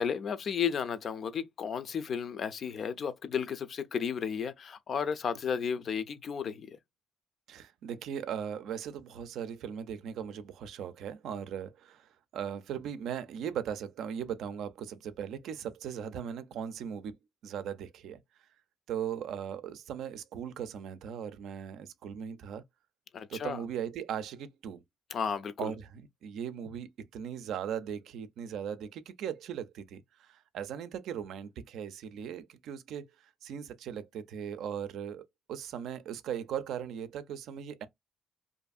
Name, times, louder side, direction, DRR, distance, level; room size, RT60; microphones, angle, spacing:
voice 1, 0.0-6.8 23.1-23.6 25.1-25.7, left 7 dB, 55° left, 0.5 m, -33 dB
voice 2, 7.5-17.1 17.4-18.2 18.9-22.6 23.3-24.8 25.6-37.9, right 8 dB, 80° right, 0.4 m, -38 dB
2.6 x 2.6 x 2.3 m
cardioid pair, 90°, 0 cm